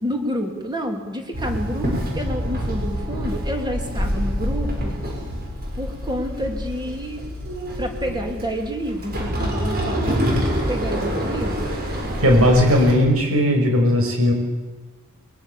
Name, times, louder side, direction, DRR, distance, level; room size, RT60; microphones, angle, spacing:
voice 1, 0.0-5.0 5.7-7.2 7.8-10.2 10.7-11.7, equal, 20° right, 3 dB, 3.3 m, -29 dB
Walk footsteps / Chatter / Hiss, 1.3-12.9, equal, 45° right, 6.9 m, -26 dB
voice 2, 12.2-14.3, left 1 dB, 75° right, 2 dB, 6.0 m, -17 dB
23.5 x 22.0 x 7.2 m, 1.2 s
head